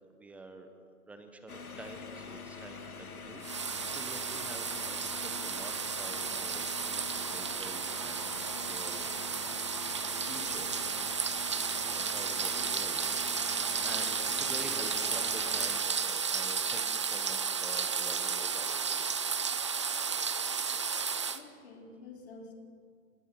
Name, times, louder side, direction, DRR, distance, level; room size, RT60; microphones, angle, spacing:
voice 1, 0.1-0.7 1.1-8.4 8.7-9.1 10.2-19.5, right 2 dB, 5° right, 7 dB, 0.9 m, -48 dB
sound 1, 1.5-15.8, left 5 dB, 75° left, 2.3 m, -45 dB
sound 2, 3.4-21.4, right 6 dB, 20° right, 0.5 m, -33 dB
voice 2, 21.3-22.5, left 3 dB, 45° left, 1 dB, 4.7 m, -49 dB
27.0 x 21.0 x 5.9 m, 2.2 s
figure-of-eight pair, 135°, 44 cm